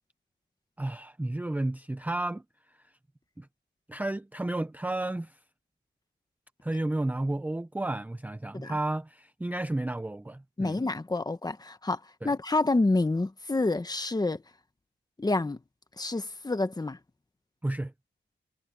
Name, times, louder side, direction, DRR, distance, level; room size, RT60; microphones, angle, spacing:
voice 1, 0.8-2.4 3.4-3.5 3.9-5.4 6.6-10.8 12.2-12.3 17.6-17.9, right 2 dB, 10° right, 0.5 m, -32 dB
voice 2, 10.6-14.4 15.2-15.6 16.0-17.0, left 2 dB, 20° left, 1.3 m, -28 dB
wide cardioid pair, 130°, 19 cm